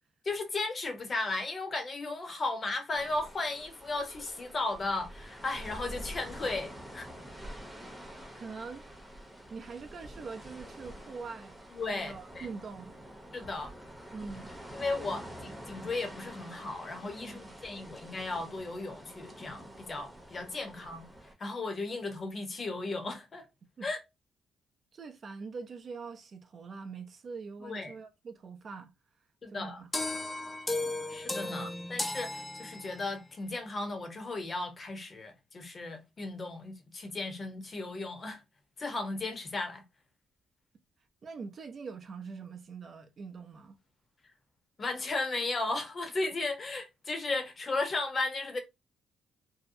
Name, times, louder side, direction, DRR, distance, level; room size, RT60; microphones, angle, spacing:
voice 1, 0.2-7.1 11.7-12.5 13.3-13.7 14.7-23.5 23.8-24.0 27.6-27.9 29.4-29.8 31.1-38.4 38.8-39.8 44.8-48.6, left 3 dB, 35° left, 0.8 m, -35 dB
sound 1, 2.9-21.3, right 1 dB, ahead, 0.8 m, -47 dB
voice 2, 8.4-8.9 9.5-11.6 11.9-12.9 14.1-14.5 15.1-15.2 17.2-17.5 23.8-23.9 24.9-28.9 29.5-29.9 31.4-31.7 41.2-43.8, right 4 dB, 50° right, 0.5 m, -43 dB
sound 2, 29.9-33.2, left 2 dB, 15° left, 0.4 m, -35 dB
2.7 x 2.0 x 2.6 m
cardioid pair, 90°, 0 cm